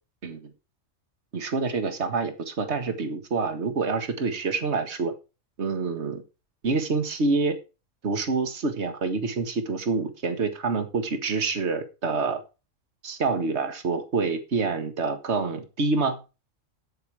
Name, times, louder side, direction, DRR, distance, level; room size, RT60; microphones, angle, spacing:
voice 1, 1.3-5.1 5.6-6.2 6.6-7.6 8.0-12.4 13.0-16.2, right 4 dB, 55° right, 8 dB, 1.9 m, -27 dB
9.2 x 9.0 x 4.8 m, 0.30 s
omnidirectional pair, 1.4 m